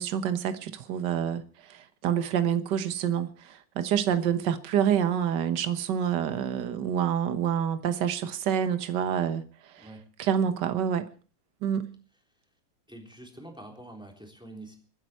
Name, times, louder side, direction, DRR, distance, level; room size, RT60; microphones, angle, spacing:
voice 1, 0.0-9.4 9.7-9.9 10.2-11.1 11.6-11.9, right 8 dB, 55° right, 1.7 m, -27 dB
voice 2, 12.9-14.8, right 1 dB, ahead, 3.6 m, -46 dB
25.5 x 9.7 x 4.5 m
omnidirectional pair, 2.4 m